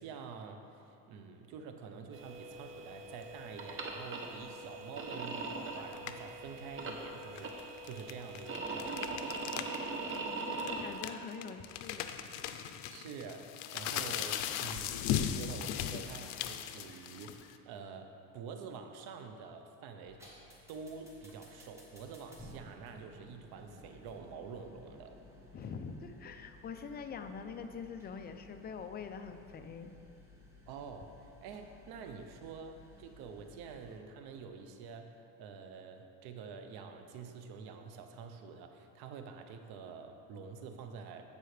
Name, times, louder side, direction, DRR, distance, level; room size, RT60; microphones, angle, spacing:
voice 1, 0.0-9.3 12.9-20.2 20.7-25.2 30.7-31.1 31.4-41.2, right 5 dB, 65° right, 6 dB, 0.9 m, -47 dB
sound 1, 2.1-10.9, right 3 dB, 30° right, 0.9 m, -41 dB
sound 2, 5.9-6.3 7.2-9.8 10.1-10.2 10.6-17.5, left 10 dB, 85° left, 0.6 m, -37 dB
voice 2, 10.2-12.2 25.5-29.9, left 5 dB, 25° left, 7 dB, 0.3 m, -44 dB
sound 3, 20.1-34.0, left 1 dB, 5° right, 1.5 m, -57 dB
15.5 x 5.5 x 3.3 m, 2.7 s
cardioid pair, 135°, 41 cm